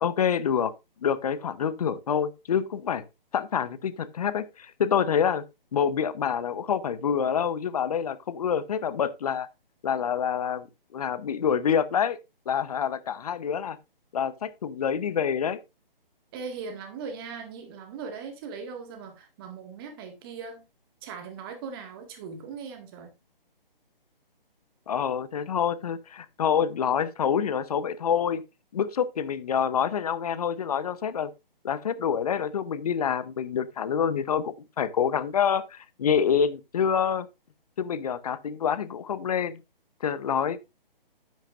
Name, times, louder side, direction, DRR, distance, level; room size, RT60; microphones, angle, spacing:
voice 1, 0.0-0.7 1.0-3.0 3.3-5.4 5.7-9.5 9.8-10.7 10.9-12.2 12.5-13.8 14.1-15.6 24.9-28.4 28.7-31.3 31.6-37.3 37.8-39.6 40.0-40.6, left 7 dB, 40° left, 0.8 m, -27 dB
voice 2, 16.3-20.6 21.0-23.1, right 5 dB, 25° right, 1.8 m, -39 dB
10.0 x 9.1 x 2.5 m
figure-of-eight pair, 150°, 29 cm